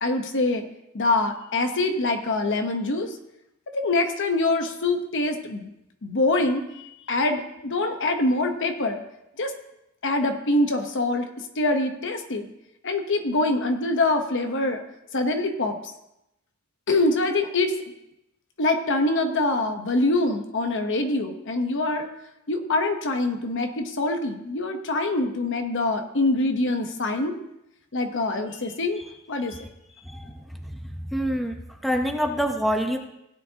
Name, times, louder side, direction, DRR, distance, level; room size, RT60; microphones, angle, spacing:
voice 1, 0.0-0.6 0.9-3.1 3.7-5.7 6.0-9.0 9.4-9.5 10.0-11.3 11.6-12.5 12.8-14.8 15.1-15.8 16.9-17.8 18.6-22.1 22.5-27.3 27.9-29.0 29.3-29.6, left 2 dB, 60° left, 6 dB, 1.0 m, -24 dB
voice 2, 30.1-30.4 30.8-31.5 31.8-33.0, equal, ahead, 3 dB, 0.8 m, -26 dB
16.5 x 9.2 x 2.9 m, 0.86 s
head